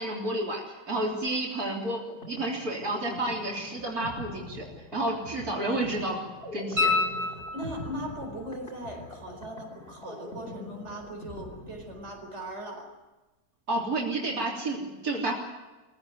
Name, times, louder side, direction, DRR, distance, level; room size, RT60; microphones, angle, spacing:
voice 1, 0.0-4.6 4.9-6.2 6.5-6.9 13.7-15.3, right 2 dB, 90° right, -2 dB, 4.1 m, -30 dB
sound 1, 1.9-12.5, left 1 dB, 40° left, 2.6 m, -44 dB
sound 2, 6.8-8.1 10.9-11.0, left 3 dB, 20° right, 4.3 m, -28 dB
voice 2, 7.2-12.9, equal, 50° right, 1 dB, 4.9 m, -39 dB
22.5 x 16.0 x 9.4 m, 1.1 s
omnidirectional pair, 1.5 m